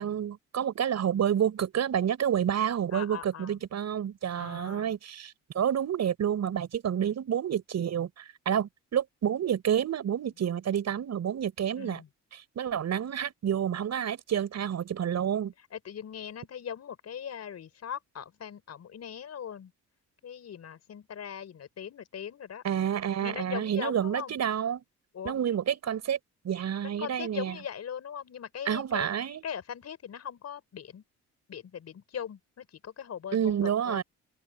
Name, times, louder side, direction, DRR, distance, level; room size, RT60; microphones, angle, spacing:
voice 1, 0.0-12.0 12.3-15.5 22.6-24.8 25.2-26.2 26.4-27.6 28.6-29.4 33.3-34.0, right 9 dB, 60° right, 6.7 m, -29 dB
voice 2, 2.9-3.6 4.3-4.9 11.8-12.1 15.7-19.7 20.2-22.6 23.2-24.3 25.1-25.3 26.8-29.2 29.4-31.0 31.5-34.0, left 8 dB, 55° left, 5.5 m, -40 dB
cardioid pair, 90°, 30 cm